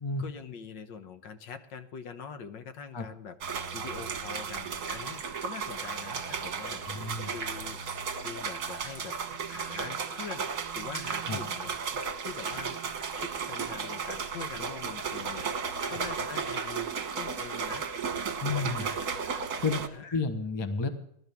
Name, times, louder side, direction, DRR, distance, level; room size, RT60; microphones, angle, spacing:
voice 1, 0.2-7.8 8.2-9.2 9.5-12.8 13.2-17.9 18.5-19.5 19.9-20.2, left 6 dB, 70° left, 9 dB, 1.7 m, -44 dB
sound 1, 3.4-19.9, right 6 dB, 55° right, 1.7 m, -34 dB
voice 2, 6.9-7.3 11.3-11.4 18.4-18.9 19.6-19.8 20.1-20.9, left 4 dB, 20° left, 8 dB, 0.9 m, -31 dB
21.5 x 12.0 x 3.6 m, 0.71 s
omnidirectional pair, 2.1 m